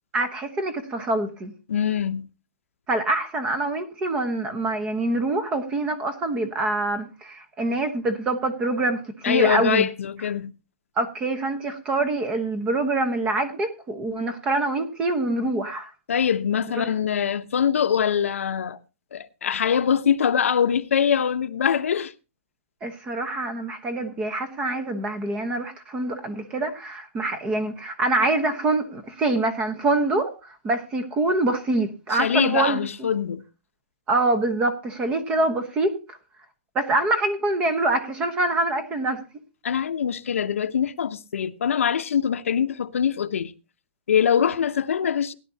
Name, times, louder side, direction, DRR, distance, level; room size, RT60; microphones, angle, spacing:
voice 1, 0.1-1.5 2.9-9.9 11.0-15.9 16.8-16.9 22.8-33.1 34.1-36.2 36.7-39.2, right 2 dB, 15° right, 1.1 m, -25 dB
voice 2, 1.7-2.3 9.2-10.5 16.1-18.8 19.1-22.1 32.1-33.4 39.6-43.5 44.1-45.3, left 8 dB, 85° left, 0.9 m, -23 dB
17.0 x 11.0 x 2.8 m
hypercardioid pair, 170°, 7 cm